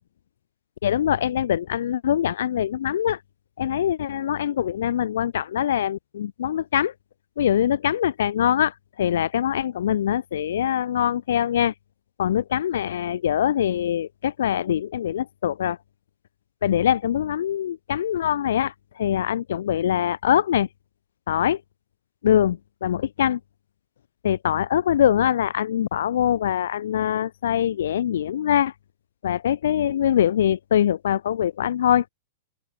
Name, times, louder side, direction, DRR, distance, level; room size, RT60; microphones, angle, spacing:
voice 1, 0.8-3.2 3.6-6.9 7.4-11.7 12.2-15.8 16.6-20.7 21.3-21.6 22.2-23.4 24.2-28.7 29.2-32.0, left 10 dB, 80° left, 5.6 m, -23 dB
open air
supercardioid pair, 155°, 0 cm